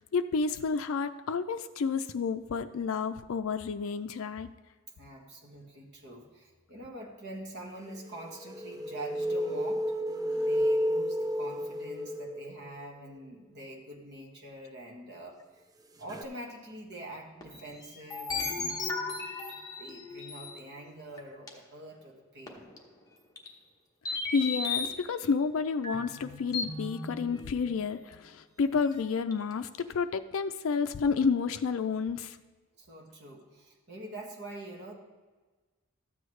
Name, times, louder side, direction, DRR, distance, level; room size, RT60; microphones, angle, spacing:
voice 1, 0.0-4.5 24.1-32.4, left 5 dB, 70° left, 8 dB, 0.4 m, -30 dB
voice 2, 5.0-9.9 10.4-15.6 16.0-18.8 19.2-19.3 19.8-22.7 32.8-34.9, right 1 dB, 50° right, 0 dB, 1.4 m, -45 dB
sound 1, 8.1-12.8 16.1-16.2, equal, 15° right, 0.3 m, -31 dB
sound 2, 17.4-20.6 21.2-21.3 21.5-21.6 22.5-22.8 23.4-23.5 24.0-25.0 25.8-27.8 28.1-28.2 28.8-28.9 29.3-29.5 29.8-29.9, left 4 dB, 15° left, 1.0 m, -36 dB
13.0 x 7.9 x 3.2 m, 1.3 s
head